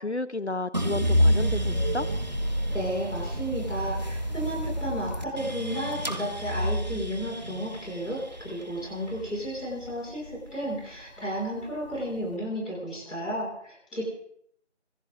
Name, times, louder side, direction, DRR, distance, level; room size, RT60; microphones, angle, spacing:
voice 1, 0.0-2.1, left 2 dB, 65° left, 14 dB, 1.3 m, -32 dB
sound 1, 0.7-10.9 11.4-12.2, equal, 35° right, 1.8 m, -29 dB
voice 2, 2.6-14.0, equal, ahead, -24 dB, 3.0 m, -33 dB
28.0 x 25.5 x 4.4 m, 0.68 s
figure-of-eight pair, 175°, 36 cm